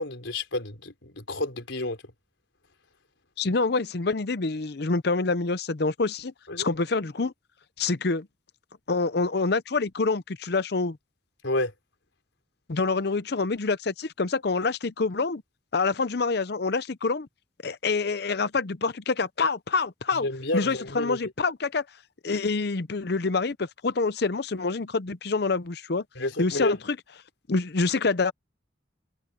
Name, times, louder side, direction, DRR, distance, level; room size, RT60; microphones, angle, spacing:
voice 1, 0.0-2.0 6.5-6.7 11.4-11.7 20.1-21.2 26.2-26.8, left 2 dB, 80° left, 3.9 m, -30 dB
voice 2, 3.4-7.3 7.8-8.3 8.9-11.0 12.7-15.4 15.7-17.3 17.6-20.3 20.5-21.8 22.2-26.0 26.4-27.0 27.5-28.3, left 4 dB, 55° left, 0.7 m, -26 dB
head